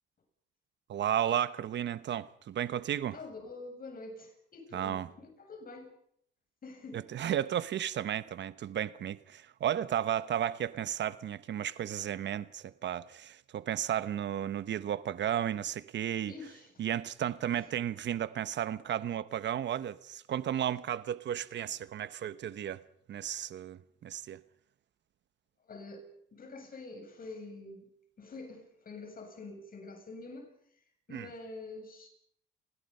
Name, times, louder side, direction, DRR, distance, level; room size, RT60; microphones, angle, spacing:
voice 1, 0.9-3.2 4.7-5.1 6.9-16.3 16.8-22.8 23.1-24.4 31.1-31.3, right 10 dB, 65° right, 1.1 m, -33 dB
voice 2, 3.1-5.9 6.6-7.1 16.3-16.8 17.5-17.7 25.6-27.9 28.2-30.5 31.1-32.1, left 3 dB, 45° left, 7.8 m, -46 dB
29.5 x 20.0 x 5.6 m
cardioid pair, 90°, 20 cm